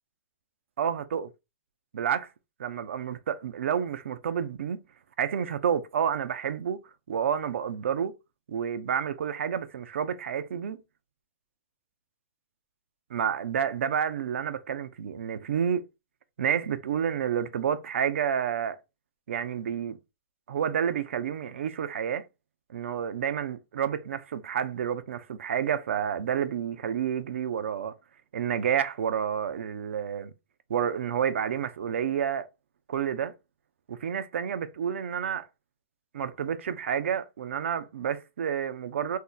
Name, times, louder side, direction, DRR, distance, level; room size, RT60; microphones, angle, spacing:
voice 1, 0.8-1.3 1.9-2.3 2.6-4.8 5.2-6.8 7.1-8.1 8.5-10.8 13.1-15.8 16.4-18.8 19.3-20.0 20.5-22.3 22.7-28.0 28.3-30.3 30.7-32.5 32.9-33.3 33.9-35.5 36.1-39.2, right 8 dB, 75° right, 0.4 m, -29 dB
2.7 x 2.1 x 3.7 m
hypercardioid pair, 135°, 7 cm